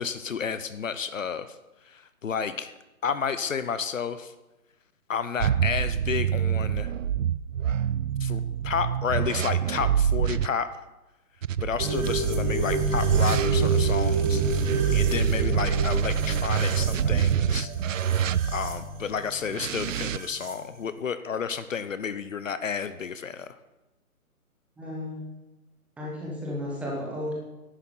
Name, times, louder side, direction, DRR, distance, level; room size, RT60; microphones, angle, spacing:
voice 1, 0.0-1.5 1.9-2.7 3.0-4.3 5.1-6.9 8.2-10.8 11.6-14.4 14.7-17.7 18.1-18.2 18.5-23.5, left 6 dB, 60° left, 12 dB, 0.8 m, -31 dB
sound 1, 5.4-10.5 11.4-18.8 19.5-20.2, right 9 dB, 60° right, 0.5 m, -26 dB
sound 2, 11.8-20.5, right 1 dB, 20° right, 1.5 m, -30 dB
voice 2, 24.8-25.2 26.0-27.3, left 1 dB, 5° right, -4 dB, 1.1 m, -33 dB
11.0 x 7.0 x 7.6 m, 1.0 s
figure-of-eight pair, 150°, 44 cm